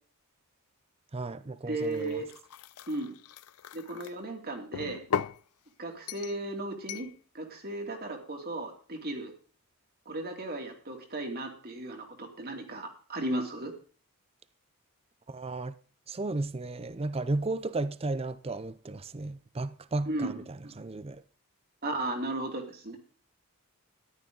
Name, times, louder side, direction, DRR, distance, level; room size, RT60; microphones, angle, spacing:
voice 1, 1.1-2.2 15.3-15.7 16.1-20.4 20.8-21.2, right 2 dB, 25° right, 0.6 m, -34 dB
voice 2, 1.7-2.3 2.9-3.1 3.7-5.0 5.8-7.1 7.3-9.3 10.1-13.7 20.1-20.8 21.8-23.0, right 2 dB, 45° right, 2.8 m, -35 dB
sound 1, 1.8-4.1 4.7-5.4 6.1-6.4 6.9-7.1, left 7 dB, 85° left, 0.5 m, -37 dB
14.0 x 11.5 x 4.0 m
head